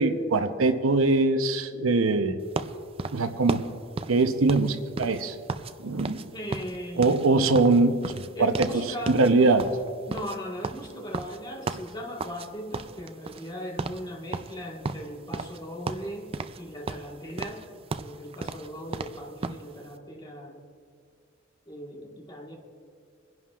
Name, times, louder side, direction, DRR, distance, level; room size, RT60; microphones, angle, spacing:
voice 1, 0.0-2.4 3.1-3.6 4.1-5.3 5.8-6.2 7.0-8.1 8.4-9.6, right 3 dB, 85° right, 8 dB, 0.8 m, -22 dB
sound 1, 2.5-5.7 6.0-6.3 6.5-8.8 9.1-9.3 9.6-12.5 12.7-13.5 13.8-14.0 14.3-15.6 15.9-16.6 16.9-19.6, right 4 dB, 30° right, 0.4 m, -34 dB
voice 2, 6.3-7.4 8.4-9.5 10.1-17.6 18.0-20.6 21.7-22.6, equal, 20° left, -1 dB, 1.5 m, -38 dB
26.0 x 11.0 x 2.4 m, 2.2 s
head